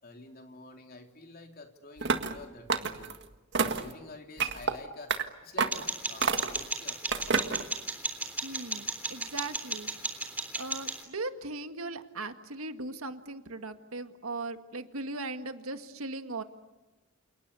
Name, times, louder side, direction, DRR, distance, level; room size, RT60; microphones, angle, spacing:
voice 1, 0.0-3.2 3.6-5.1 5.4-7.0, left 2 dB, 45° left, 4 dB, 3.5 m, -48 dB
sound 1, 2.0-2.4 2.7-3.2 3.5-3.9 4.4-4.7 5.1-5.2 5.6-5.8 6.2-6.6 7.1-7.6, right 5 dB, 55° right, 1.8 m, -28 dB
sound 2, 5.7-11.0, right 2 dB, 10° right, 3.6 m, -35 dB
voice 2, 8.4-10.3 10.5-16.4, right 2 dB, 85° right, 8 dB, 1.9 m, -39 dB
29.0 x 29.0 x 6.9 m, 1.1 s
head